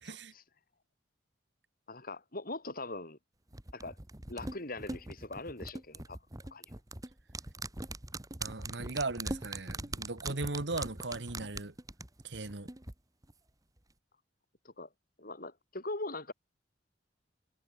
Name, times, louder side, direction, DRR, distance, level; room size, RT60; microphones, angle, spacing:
voice 1, 0.0-0.3 8.4-11.7 12.2-12.7, right 3 dB, 75° right, 1.7 m, -38 dB
voice 2, 1.9-3.2 3.7-4.0 4.3-6.2 6.5-6.6 14.6-14.9 15.2-16.3, left 2 dB, 55° left, 6.6 m, -41 dB
sound 1, 3.5-12.9 13.2-13.3, right 2 dB, 20° right, 1.7 m, -41 dB
head